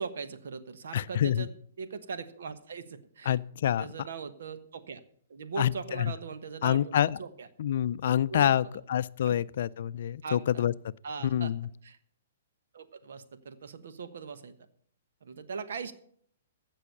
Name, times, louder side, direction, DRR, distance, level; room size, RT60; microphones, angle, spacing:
voice 1, 0.0-1.5 1.8-3.4 3.6-5.0 5.3-7.5 8.0-8.5 9.2-9.4 10.2-10.7 11.0-11.5 11.8-12.0 12.7-14.6 15.2-15.9, right 5 dB, 70° right, 1.2 m, -40 dB
voice 2, 0.9-1.5 3.3-3.9 5.6-6.1 6.6-7.2 7.6-10.7 11.2-11.7, left 10 dB, 60° left, 0.4 m, -27 dB
15.0 x 6.2 x 6.6 m
hypercardioid pair, 125°, 0 cm